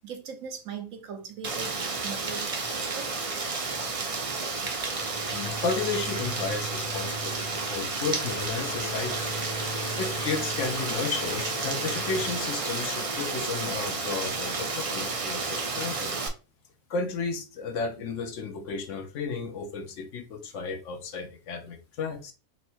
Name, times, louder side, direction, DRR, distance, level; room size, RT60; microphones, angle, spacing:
voice 1, 0.0-3.2, right 6 dB, 70° right, 1.1 m, -40 dB
Rain, 1.4-16.3, right 4 dB, 45° right, 0.4 m, -31 dB
sound 1, 4.8-13.1, left 1 dB, 80° left, 1.3 m, -39 dB
voice 2, 5.3-9.2 10.0-16.2 16.9-22.3, left 4 dB, 65° left, 0.9 m, -33 dB
4.2 x 2.1 x 4.4 m
omnidirectional pair, 1.5 m